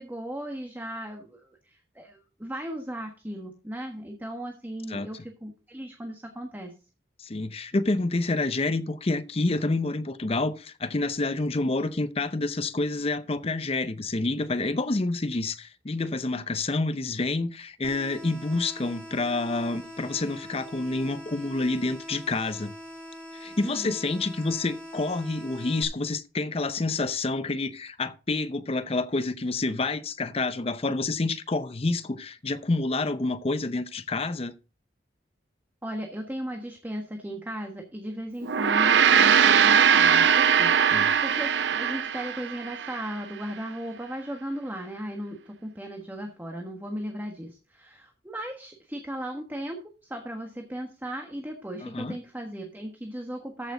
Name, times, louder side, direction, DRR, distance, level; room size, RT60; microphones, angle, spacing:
voice 1, 0.0-6.7 23.6-23.9 35.8-49.8 50.0-53.7, equal, 10° right, 1.4 m, -36 dB
voice 2, 7.2-22.7 23.4-34.5 40.9-41.1 51.8-52.2, left 2 dB, 35° left, 0.7 m, -28 dB
sound 1, 17.8-25.8, equal, 10° left, 1.9 m, -43 dB
Gong, 38.4-43.0, right 7 dB, 85° right, 0.6 m, -20 dB
14.0 x 6.2 x 3.8 m
head